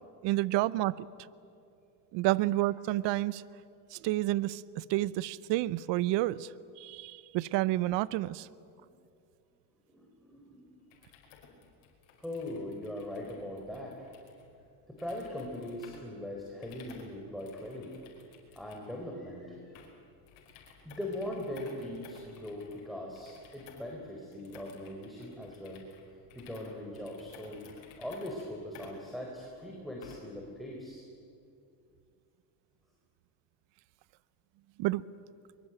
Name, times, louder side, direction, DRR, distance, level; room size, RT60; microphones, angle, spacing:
voice 1, 0.2-1.1 2.1-3.4 3.9-6.5 6.8-8.5 34.8-35.1, right 16 dB, 65° right, 20 dB, 0.8 m, -30 dB
voice 2, 9.9-10.8 12.2-14.1 14.9-17.9 18.5-19.8 20.8-25.9 26.3-31.0, left 1 dB, ahead, -1 dB, 4.4 m, -41 dB
sound 1, 10.8-30.4, left 6 dB, 75° left, 5.1 m, -56 dB
23.5 x 22.5 x 9.1 m, 2.5 s
supercardioid pair, 105°, 45 cm